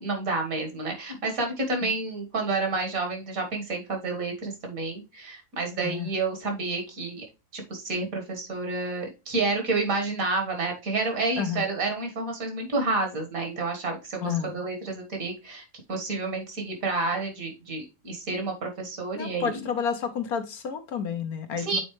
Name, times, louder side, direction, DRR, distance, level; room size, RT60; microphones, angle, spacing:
voice 1, 0.0-7.2 7.5-19.7 21.6-21.8, right 3 dB, 60° right, 2.0 m, -30 dB
voice 2, 5.8-6.1 11.4-11.6 14.2-14.5 19.1-21.8, left 7 dB, 70° left, 1.3 m, -30 dB
8.6 x 4.1 x 3.1 m
omnidirectional pair, 1.7 m